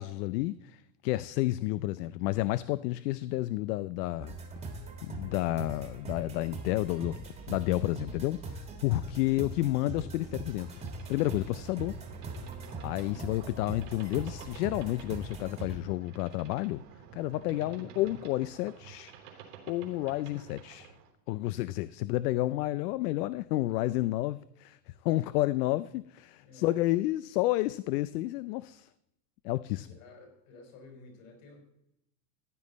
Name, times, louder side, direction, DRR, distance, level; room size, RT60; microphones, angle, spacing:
voice 1, 0.0-4.4 5.0-7.2 7.5-10.8 11.1-11.9 12.8-16.8 17.1-19.1 19.7-20.9 21.3-28.9 29.4-29.9, left 17 dB, 80° left, 0.6 m, -31 dB
sound 1, 4.2-15.8, right 2 dB, 15° right, 1.6 m, -41 dB
Boat Water vehicle, 10.6-21.1, right 8 dB, 90° right, 3.4 m, -51 dB
voice 2, 13.0-13.3 17.6-17.9 26.4-26.8 29.7-31.6, left 3 dB, 55° left, 4.9 m, -53 dB
15.0 x 9.5 x 4.1 m
supercardioid pair, 170°, 46 cm